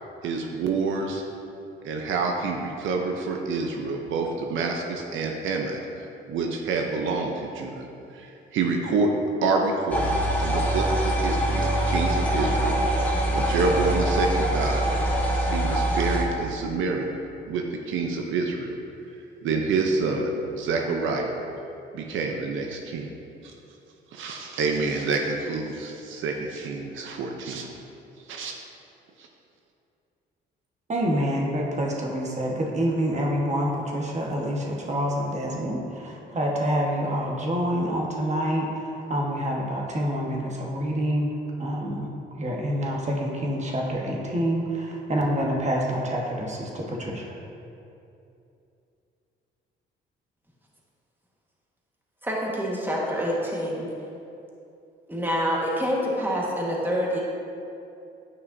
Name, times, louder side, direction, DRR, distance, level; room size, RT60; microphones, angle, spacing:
voice 1, 0.2-1.2 1.8-7.9 8.1-9.1 9.4-10.1 10.4-14.9 15.4-17.2 17.5-18.8 19.4-21.4 21.9-23.1 23.4-23.5 24.1-27.7 28.3-28.5 29.2-29.3, right 4 dB, 80° right, 2 dB, 0.7 m, -28 dB
sound 1, 9.9-16.2, right 1 dB, 10° left, 1.3 m, -24 dB
voice 2, 30.9-41.3 41.6-42.1 42.4-47.2, equal, 35° right, -1 dB, 1.3 m, -27 dB
voice 3, 52.2-53.9 55.1-57.2, equal, 10° right, -4 dB, 1.4 m, -26 dB
9.6 x 5.6 x 2.7 m, 2.7 s
cardioid pair, 90°, 20 cm